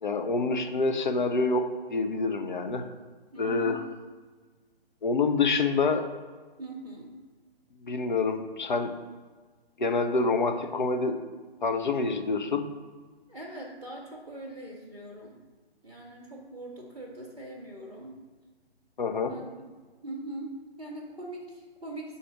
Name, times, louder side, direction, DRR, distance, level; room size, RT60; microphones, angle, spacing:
voice 1, 0.0-2.8 3.4-3.8 5.0-6.1 7.8-8.9 9.8-11.1 11.6-12.6 19.0-19.3, left 3 dB, 45° left, 5 dB, 0.7 m, -27 dB
voice 2, 3.3-3.8 6.6-7.1 13.3-15.3 15.8-18.2 19.3-19.7 20.0-22.2, right 2 dB, 5° right, -11 dB, 0.5 m, -41 dB
5.8 x 4.2 x 6.0 m, 1.4 s
figure-of-eight pair, 140°, 32 cm